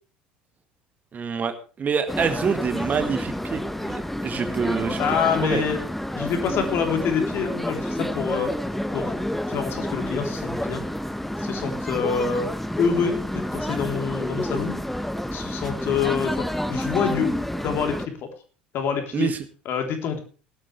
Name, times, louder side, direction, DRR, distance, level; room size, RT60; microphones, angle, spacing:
voice 1, 1.1-5.0 5.4-5.6 19.1-19.4, right 6 dB, 30° right, 9 dB, 1.7 m, -26 dB
sound 1, 2.1-18.1, left 1 dB, 5° left, 1.0 m, -29 dB
voice 2, 5.0-5.8 6.2-8.5 8.9-9.2 9.5-10.8 11.4-12.5 12.8-14.8 15.3-17.3 17.6-18.3 18.7-19.3 19.7-20.2, left 6 dB, 45° left, 4 dB, 3.5 m, -26 dB
17.5 x 12.0 x 3.3 m, 0.37 s
figure-of-eight pair, 65°, 5 cm